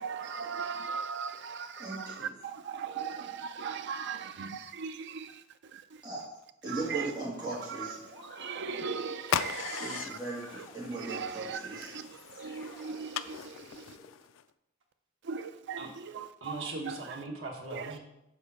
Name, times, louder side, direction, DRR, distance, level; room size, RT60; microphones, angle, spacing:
voice 1, 0.0-5.4 5.7-5.8 6.7-7.1 7.7-10.2 10.6-10.7 11.0-13.8 15.2-16.5 16.9-17.0 17.7-18.0, right 6 dB, 60° right, 0.5 m, -39 dB
voice 2, 1.8-2.3 6.0-6.2 6.6-8.1 9.7-12.0, right 2 dB, 20° right, 2.7 m, -38 dB
sound 1, 7.5-8.6 9.7-14.1, left 1 dB, 20° left, 1.4 m, -54 dB
sound 2, 9.2-14.4, left 9 dB, 85° left, 0.4 m, -38 dB
voice 3, 16.4-18.0, right 2 dB, 80° right, 1.1 m, -39 dB
6.2 x 5.0 x 5.4 m
head